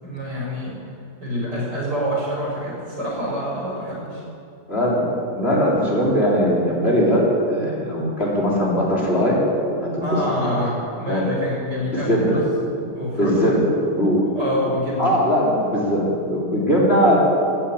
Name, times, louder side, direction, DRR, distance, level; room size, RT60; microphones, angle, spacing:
voice 1, 0.0-0.8 1.2-4.2 10.0-12.5 12.9-13.6 14.4-15.3, equal, 85° right, -4 dB, 5.9 m, -26 dB
voice 2, 4.7-9.4 9.8-10.1 10.4-10.6 11.1-11.3 12.1-12.4 13.2-14.2 15.0-17.2, equal, 35° left, -5 dB, 3.7 m, -20 dB
15.0 x 9.7 x 8.6 m, 2.5 s
omnidirectional pair, 1.8 m